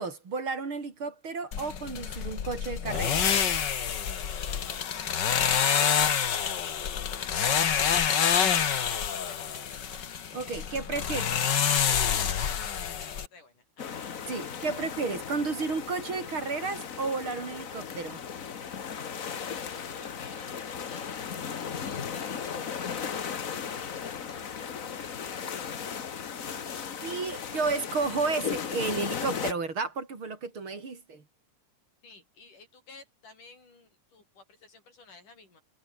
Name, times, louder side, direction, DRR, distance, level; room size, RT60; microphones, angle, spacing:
voice 1, 0.0-3.3 10.3-11.3 14.3-18.2 27.0-31.2, right 4 dB, 40° right, 4.2 m, -32 dB
sound 1, 1.5-13.3, left 8 dB, 45° left, 1.6 m, -27 dB
voice 2, 6.9-8.0 8.7-10.1 11.0-14.0 19.4-26.8 32.0-35.6, left 3 dB, 90° left, 9.2 m, -54 dB
sound 2, 13.8-29.5, left 7 dB, 65° left, 0.8 m, -36 dB
omnidirectional pair, 3.5 m